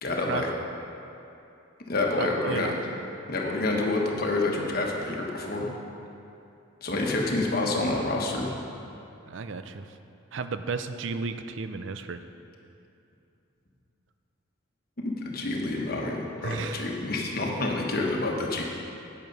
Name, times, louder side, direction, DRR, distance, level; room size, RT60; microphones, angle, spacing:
voice 1, 0.0-0.5 1.9-2.7 3.3-5.7 6.8-8.5 15.0-18.6, left 2 dB, 45° left, -1 dB, 1.2 m, -28 dB
voice 2, 2.2-2.7 9.3-9.9 10.3-12.2 16.4-16.9, right 4 dB, 60° right, 10 dB, 0.5 m, -33 dB
8.9 x 8.2 x 5.3 m, 2.7 s
head